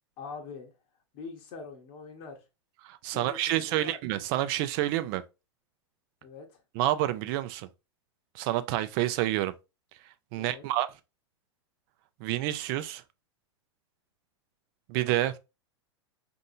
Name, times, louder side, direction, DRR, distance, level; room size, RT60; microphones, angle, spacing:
voice 1, 0.2-0.7 1.1-2.4 3.1-4.0 6.2-6.5 10.3-10.6, left 4 dB, 50° left, 0.9 m, -43 dB
voice 2, 2.8-5.2 6.7-7.7 8.3-9.5 10.3-10.9 12.2-13.0 14.9-15.3, right 14 dB, 50° right, 0.5 m, -28 dB
4.1 x 2.6 x 2.6 m
hypercardioid pair, 105°, 15 cm